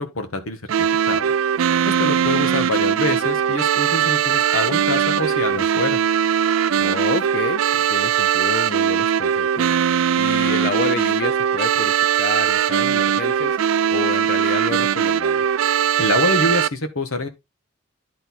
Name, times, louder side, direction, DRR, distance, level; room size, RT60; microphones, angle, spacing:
voice 1, 0.0-1.3 1.8-6.0 16.0-17.3, left 2 dB, 85° left, 1.7 m, -25 dB
sound 1, 0.7-16.7, right 8 dB, 80° right, 0.4 m, -20 dB
voice 2, 6.8-15.5, left 5 dB, 50° left, 0.4 m, -29 dB
10.5 x 4.3 x 4.3 m
head